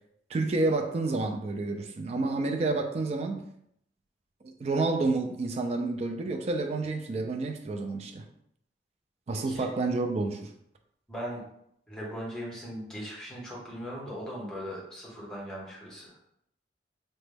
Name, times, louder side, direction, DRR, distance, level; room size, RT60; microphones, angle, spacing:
voice 1, 0.3-3.4 4.4-8.2 9.3-10.5, right 3 dB, 35° right, 5 dB, 0.3 m, -29 dB
voice 2, 11.1-11.4 11.9-16.1, equal, 5° left, -5 dB, 0.9 m, -39 dB
3.0 x 2.2 x 3.3 m, 0.73 s
head